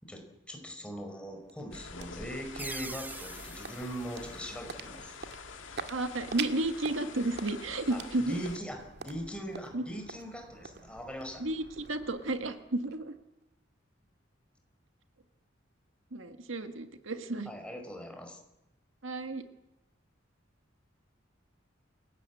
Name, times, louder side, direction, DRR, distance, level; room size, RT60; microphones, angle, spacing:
voice 1, 0.0-5.1 7.9-11.4 17.4-18.4, equal, 5° left, 3 dB, 5.2 m, -41 dB
sound 1, 1.0-13.4, right 5 dB, 60° right, 2.0 m, -46 dB
sound 2, 1.7-8.6, left 4 dB, 70° left, 2.3 m, -47 dB
sound 3, 2.6-5.2, right 3 dB, 10° right, 0.8 m, -45 dB
voice 2, 5.9-8.4 9.7-9.8 11.4-13.1 16.1-17.5 19.0-19.4, right 2 dB, 75° right, 8 dB, 1.7 m, -32 dB
28.5 x 17.5 x 8.4 m, 0.94 s
head